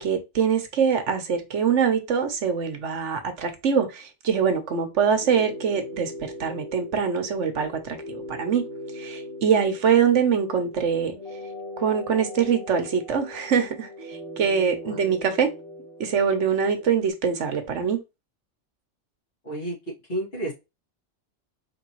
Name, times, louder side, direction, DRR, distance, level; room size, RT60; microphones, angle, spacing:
voice 1, 0.0-6.1 6.4-8.6 8.9-11.2 11.8-15.5 16.0-18.0, right 7 dB, 85° right, 1.3 m, -24 dB
sound 1, 5.1-17.1, left 1 dB, 30° left, 1.9 m, -40 dB
voice 2, 19.4-19.8 20.1-20.5, right 1 dB, 50° left, 2.7 m, -30 dB
4.7 x 3.6 x 3.1 m
omnidirectional pair, 1.2 m